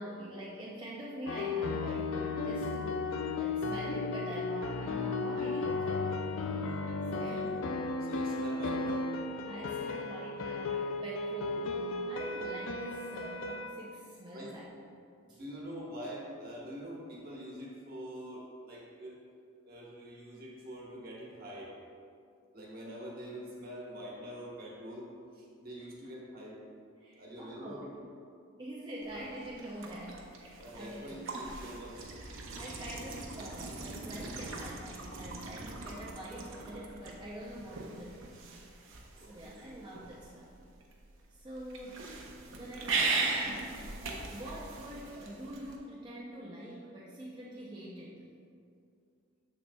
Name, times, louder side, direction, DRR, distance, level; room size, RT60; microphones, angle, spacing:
voice 1, 0.0-6.3 6.7-6.9 7.1-7.6 9.5-15.0 15.3-15.4 25.8-25.9 27.0-27.9 28.6-31.3 32.6-38.4 38.7-38.9 39.3-40.6 41.3-42.1 42.5-43.4 43.8-48.3, right 1 dB, 20° right, -6 dB, 0.5 m, -45 dB
sound 1, 1.3-13.7, left 3 dB, 80° left, 0.4 m, -34 dB
voice 2, 7.1-7.5 8.0-9.0 14.3-14.5 15.2-19.1 19.6-21.7 22.5-26.6 27.2-28.1 30.6-32.4 39.1-39.6, equal, 45° right, -3 dB, 1.2 m, -45 dB
sound 2, 29.0-45.8, right 3 dB, 70° right, 0.8 m, -39 dB
7.2 x 6.7 x 2.3 m, 2.4 s
head